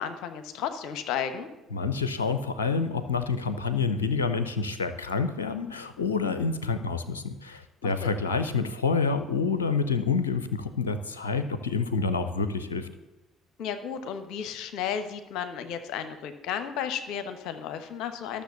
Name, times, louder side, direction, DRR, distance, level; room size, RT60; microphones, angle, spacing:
voice 1, 0.0-1.5 7.8-8.1 13.6-18.4, left 8 dB, 65° left, 9 dB, 1.0 m, -33 dB
voice 2, 1.7-12.9, left 4 dB, 85° left, 10 dB, 0.6 m, -28 dB
13.0 x 6.6 x 6.9 m, 1.1 s
figure-of-eight pair, 50°, 0 cm